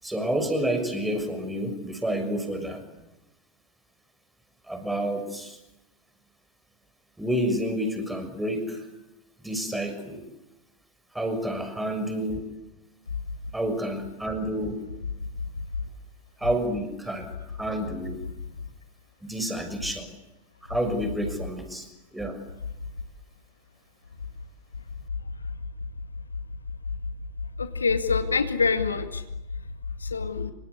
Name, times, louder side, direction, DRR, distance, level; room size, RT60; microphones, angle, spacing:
voice 1, 0.0-2.8 4.7-5.6 7.2-8.8 9.4-10.2 11.1-12.5 13.5-14.8 16.4-17.3 17.6-18.2 19.2-20.1 20.6-22.4, right 1 dB, 5° right, 6 dB, 6.4 m, -29 dB
voice 2, 27.6-29.2 30.0-30.5, left 5 dB, 75° left, 8 dB, 2.3 m, -25 dB
27.5 x 26.0 x 8.3 m, 0.96 s
figure-of-eight pair, 90°, 0 cm